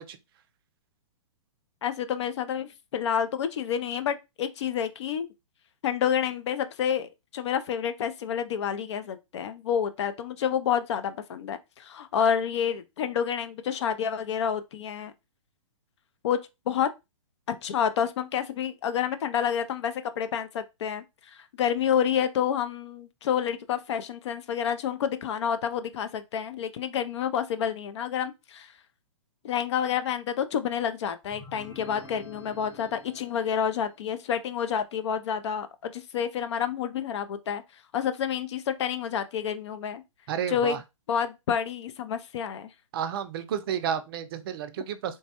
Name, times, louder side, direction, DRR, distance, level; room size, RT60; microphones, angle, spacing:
voice 1, 1.8-5.3 5.8-15.1 16.2-16.4 16.7-16.9 17.5-21.0 21.6-28.7 29.4-37.6 37.9-40.0 40.5-40.8 41.1-42.7, left 8 dB, 55° left, 0.5 m, -29 dB
sound 1, 31.2-34.0, left 2 dB, 15° left, 0.8 m, -48 dB
voice 2, 40.3-40.8 42.9-45.2, right 8 dB, 45° right, 0.4 m, -31 dB
3.2 x 2.2 x 2.8 m
hypercardioid pair, 135°, 17 cm